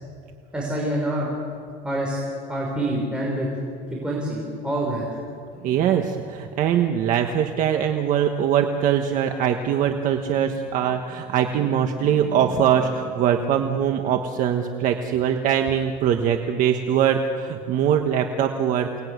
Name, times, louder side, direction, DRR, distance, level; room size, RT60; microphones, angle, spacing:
voice 1, 0.5-1.4 1.8-2.2 2.5-3.5 4.0-5.0, right 1 dB, 5° right, -3 dB, 5.3 m, -26 dB
voice 2, 5.6-18.9, right 9 dB, 50° right, 5 dB, 1.5 m, -22 dB
29.0 x 20.0 x 9.6 m, 2.3 s
cardioid pair, 155°, 17 cm